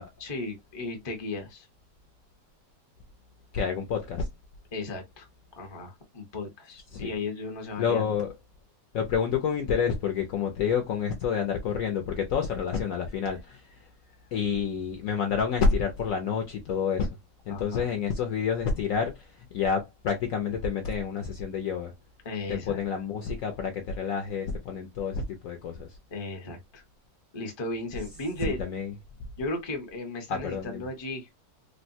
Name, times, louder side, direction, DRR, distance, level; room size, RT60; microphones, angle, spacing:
voice 1, 0.2-1.7 4.7-5.3 5.6-8.1 17.5-17.9 22.2-22.8 26.1-26.8 27.3-28.6 29.4-31.3, left 2 dB, 30° left, 0.5 m, -35 dB
voice 2, 3.5-4.3 6.9-7.1 7.8-8.3 8.9-13.6 14.3-17.1 17.5-21.9 22.5-25.9 28.4-28.9 30.3-30.8, left 6 dB, 70° left, 0.8 m, -28 dB
3.4 x 2.1 x 2.6 m
omnidirectional pair, 1.8 m